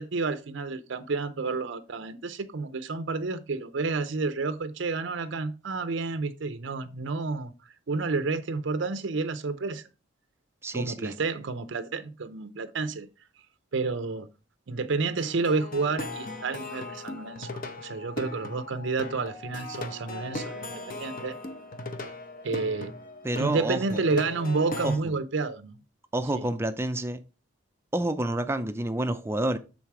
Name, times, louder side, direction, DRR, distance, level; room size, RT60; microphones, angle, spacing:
voice 1, 0.0-7.5 7.9-9.8 10.7-13.1 13.7-14.3 14.7-21.3 22.4-22.9 23.4-25.7 26.3-26.4, right 4 dB, 65° right, 0.5 m, -30 dB
voice 2, 10.6-11.2 23.2-24.0 24.8-25.2 26.1-27.2 27.9-29.6, right 1 dB, 10° right, 0.4 m, -29 dB
Plucked string instrument, 15.2-25.0, left 2 dB, 40° left, 0.8 m, -38 dB
7.3 x 3.9 x 4.6 m
head